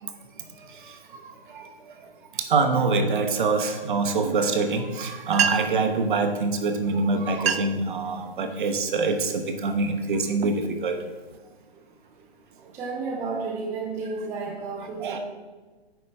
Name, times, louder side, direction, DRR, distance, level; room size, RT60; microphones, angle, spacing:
voice 1, 1.5-1.9 2.4-11.0 15.0-15.2, right 3 dB, 50° right, 5 dB, 0.9 m, -25 dB
sound 1, 5.3-5.9 6.8-6.9 7.3-7.9 8.4-8.7 9.3-9.6 10.1-11.4, right 7 dB, 70° right, 0.5 m, -28 dB
voice 2, 12.7-15.2, right 4 dB, 10° right, -3 dB, 0.5 m, -32 dB
9.1 x 5.1 x 3.2 m, 1.3 s
figure-of-eight pair, 125°, 31 cm